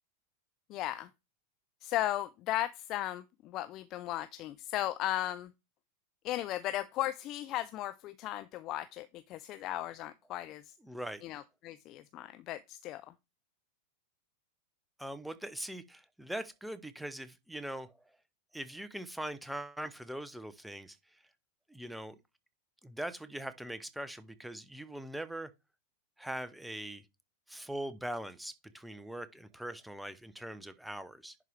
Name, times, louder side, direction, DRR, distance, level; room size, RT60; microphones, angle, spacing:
voice 1, 0.7-1.1 1.8-5.5 6.2-10.7 11.2-13.0, left 14 dB, 35° left, 0.4 m, -36 dB
voice 2, 10.8-11.2 15.0-17.9 18.5-21.0 21.7-22.2 22.8-25.5 26.2-27.0 27.5-31.4, right 1 dB, ahead, 0.8 m, -41 dB
10.5 x 4.6 x 3.4 m
figure-of-eight pair, 90°, 0 cm